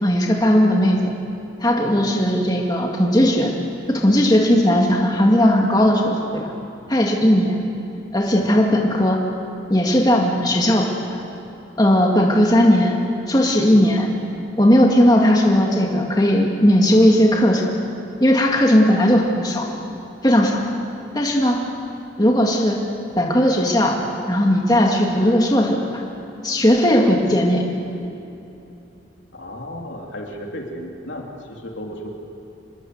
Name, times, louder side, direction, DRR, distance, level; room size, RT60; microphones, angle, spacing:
voice 1, 0.0-1.1 1.6-3.5 3.9-6.5 6.9-7.6 8.1-9.2 9.7-10.9 11.8-13.0 13.3-14.1 14.6-17.7 18.2-19.7 20.2-20.6 21.1-21.6 22.2-22.8 23.2-24.0 24.3-26.0 26.4-27.6, equal, 20° left, 0 dB, 2.1 m, -17 dB
voice 2, 29.3-32.1, equal, 75° left, 0 dB, 3.3 m, -34 dB
26.5 x 21.0 x 8.0 m, 2.9 s
head